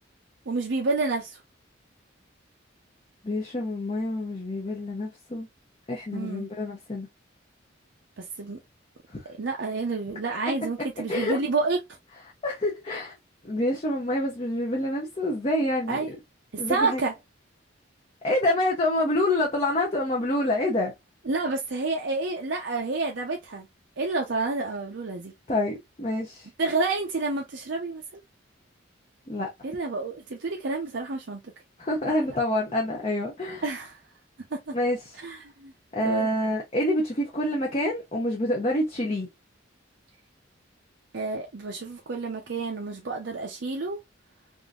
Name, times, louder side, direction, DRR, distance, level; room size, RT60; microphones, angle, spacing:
voice 1, 0.5-1.4 6.1-6.5 8.2-8.6 9.3-11.8 15.9-16.1 16.7-17.1 21.3-23.7 24.0-25.3 26.6-28.0 29.6-31.4 32.1-32.4 33.6-34.0 34.5-34.7 35.2-35.7 36.0-36.3 41.1-44.0, right 3 dB, 60° right, 0.6 m, -29 dB
voice 2, 3.2-5.5 5.9-7.1 9.1-9.2 10.8-11.4 12.4-13.1 13.4-16.2 16.6-17.0 18.2-20.9 25.5-26.5 29.3-29.5 31.8-33.6 34.7-35.1 35.9-39.3, left 1 dB, 30° left, 0.7 m, -27 dB
3.6 x 2.6 x 2.3 m
head